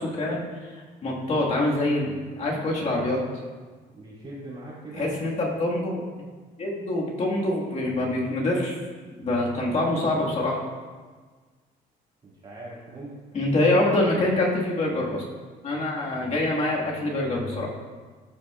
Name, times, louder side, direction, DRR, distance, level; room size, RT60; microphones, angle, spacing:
voice 1, 0.0-3.2 4.9-6.0 6.6-8.8 9.2-10.6 13.3-15.2 15.6-17.7, left 1 dB, 40° left, -3 dB, 1.8 m, -25 dB
voice 2, 3.9-5.3 12.2-13.1, right 2 dB, 40° right, -10 dB, 2.2 m, -41 dB
12.0 x 5.9 x 2.4 m, 1.4 s
cardioid pair, 110°, 17 cm